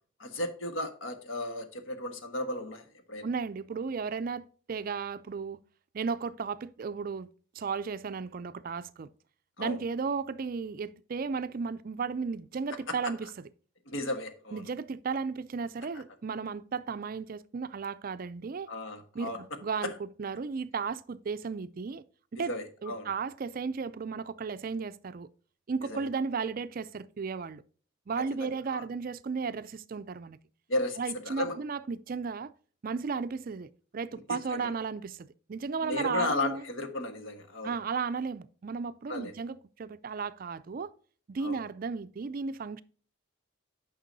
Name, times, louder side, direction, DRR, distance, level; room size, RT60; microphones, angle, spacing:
voice 1, 0.2-3.3 9.6-9.8 12.9-13.1 13.9-14.6 18.7-19.4 19.8-19.9 22.4-23.1 25.9-26.0 28.2-28.8 30.7-31.6 34.3-34.7 35.8-37.7 39.1-39.3 41.4-41.6, left 2 dB, 80° left, 1.4 m, -35 dB
voice 2, 3.2-5.6 5.9-7.3 7.5-9.1 9.6-13.5 14.5-18.7 19.1-22.0 22.3-22.5 22.8-25.3 25.7-27.6 28.1-30.4 31.0-32.5 32.8-36.6 37.6-40.9 41.3-42.8, right 5 dB, 45° right, 0.4 m, -34 dB
9.3 x 6.0 x 2.7 m
head